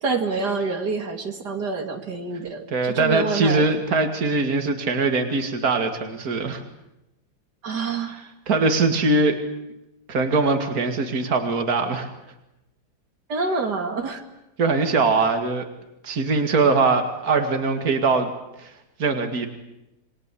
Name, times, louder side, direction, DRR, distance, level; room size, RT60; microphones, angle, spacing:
voice 1, 0.0-3.6 7.6-8.2 13.3-14.2, right 4 dB, 75° right, 5 dB, 2.8 m, -27 dB
voice 2, 2.7-6.6 8.0-9.4 10.1-12.1 14.6-15.7 16.0-18.3 18.6-18.7 19.0-19.5, right 3 dB, 60° right, 6 dB, 2.7 m, -22 dB
28.5 x 23.0 x 8.4 m, 0.91 s
omnidirectional pair, 1.8 m